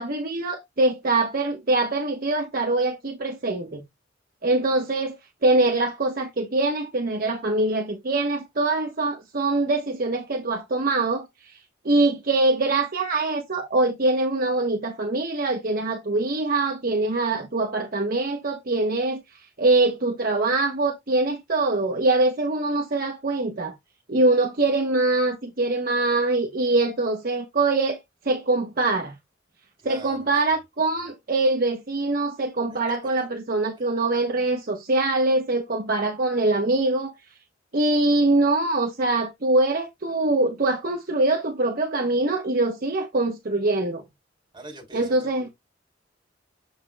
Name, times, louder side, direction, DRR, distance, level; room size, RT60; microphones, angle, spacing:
voice 1, 0.0-3.8 4.4-5.2 5.4-11.5 11.8-19.2 19.6-23.8 24.1-28.0 28.2-29.1 29.8-37.1 37.7-44.0 44.9-45.5, right 2 dB, 50° right, 1.0 m, -23 dB
voice 2, 29.8-30.3 32.7-32.8 44.5-45.5, right 2 dB, 25° right, 3.4 m, -43 dB
7.3 x 5.8 x 2.2 m
head